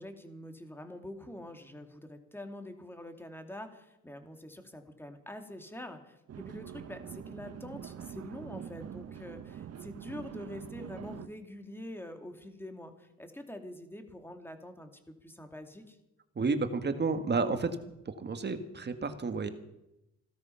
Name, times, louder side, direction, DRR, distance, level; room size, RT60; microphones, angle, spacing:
voice 1, 0.0-16.0, left 1 dB, 5° left, 6 dB, 2.5 m, -45 dB
sound 1, 6.3-11.3, right 9 dB, 55° right, 1.1 m, -44 dB
voice 2, 16.4-17.8 18.1-19.5, right 4 dB, 35° right, 8 dB, 1.8 m, -31 dB
16.5 x 13.0 x 5.8 m, 0.87 s
cardioid pair, 90°, 30 cm